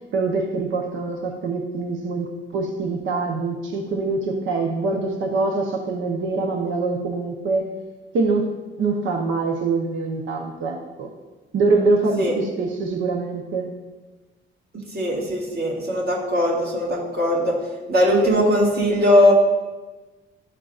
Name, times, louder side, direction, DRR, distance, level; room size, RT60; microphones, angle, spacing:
voice 1, 0.1-7.7 8.1-8.5 8.8-11.1 11.5-13.7, right 3 dB, 75° right, 1 dB, 0.9 m, -24 dB
voice 2, 14.9-17.6 17.9-19.3, left 1 dB, 50° right, -3 dB, 2.2 m, -19 dB
12.5 x 4.5 x 2.5 m, 1.2 s
cardioid pair, 90°, 20 cm